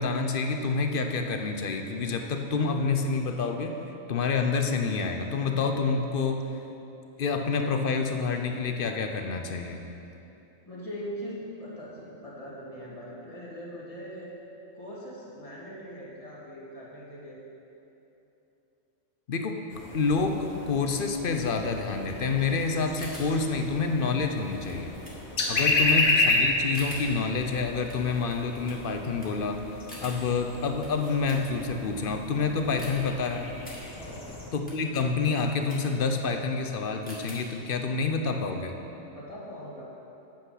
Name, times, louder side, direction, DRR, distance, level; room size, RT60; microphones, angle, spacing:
voice 1, 0.0-3.8 4.1-6.4 7.2-9.8 19.3-19.6 19.9-24.9 25.5-29.6 30.0-33.5 34.5-38.8, left 4 dB, 50° left, 5 dB, 0.7 m, -28 dB
voice 2, 10.7-14.3 14.8-17.4 25.6-25.9 34.0-34.4 39.1-39.8, equal, 25° left, -6 dB, 2.0 m, -41 dB
sound 1, 19.7-34.5, left 2 dB, 75° left, 1.7 m, -32 dB
sound 2, 22.9-31.8 32.2-37.8, equal, 5° left, 2.2 m, -48 dB
8.8 x 8.3 x 5.7 m, 2.9 s
omnidirectional pair, 1.4 m